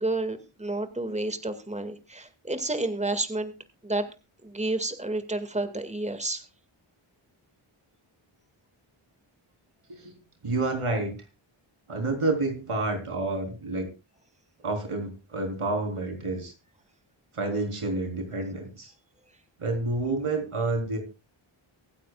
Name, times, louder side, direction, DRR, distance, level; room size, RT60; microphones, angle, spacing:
voice 1, 0.0-3.5 3.8-4.1 4.4-6.4, right 2 dB, 15° right, 9 dB, 1.9 m, -30 dB
voice 2, 10.4-11.1 11.9-13.9 14.6-16.5 17.3-18.9 19.6-21.0, right 2 dB, 85° right, 3 dB, 3.9 m, -29 dB
24.0 x 9.2 x 2.3 m, 0.27 s
wide cardioid pair, 55°, 50 cm